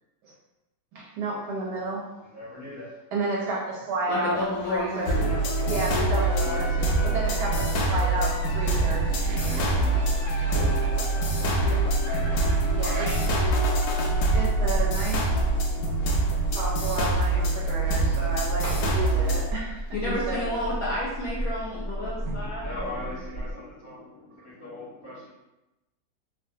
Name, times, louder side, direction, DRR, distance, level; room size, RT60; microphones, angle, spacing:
voice 1, 0.9-2.1 3.1-5.2 5.6-6.7 7.0-9.1 12.7-13.5 14.3-15.4 15.8-16.0 16.5-20.5 22.3-22.5, right 2 dB, 70° right, -4 dB, 1.0 m, -31 dB
voice 2, 2.3-2.9 5.0-5.7 6.4-7.2 9.2-10.9 21.9-25.3, left 2 dB, 25° right, -11 dB, 0.4 m, -40 dB
voice 3, 4.1-5.3 5.7-5.9 19.9-22.7, left 1 dB, 65° left, -7 dB, 0.9 m, -31 dB
sound 1, 4.3-17.2 17.6-20.1, right 2 dB, 90° right, 1.4 m, -45 dB
sound 2, 5.1-19.5, right 2 dB, 90° left, 0.8 m, -25 dB
Bird, 14.0-23.5, equal, 45° left, 0.4 m, -34 dB
3.3 x 2.3 x 2.6 m, 0.99 s
omnidirectional pair, 2.2 m